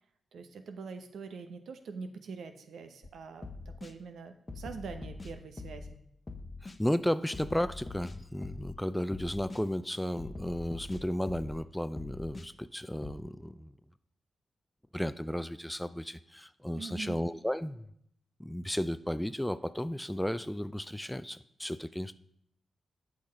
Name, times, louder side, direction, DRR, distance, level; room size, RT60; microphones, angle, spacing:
voice 1, 0.3-6.0 16.8-17.2, right 5 dB, 75° right, 8 dB, 0.9 m, -44 dB
sound 1, 3.0-3.1 3.4-3.9 4.5-5.9 6.3-6.8 7.3-8.8 9.1-9.6 10.2-11.6 12.0-12.5 13.0-13.1, left 3 dB, 35° left, 0.9 m, -43 dB
voice 2, 6.6-13.7 14.9-17.9 18.4-22.1, equal, 5° left, 14 dB, 0.5 m, -34 dB
8.6 x 5.9 x 5.2 m, 0.70 s
supercardioid pair, 45°, 0 cm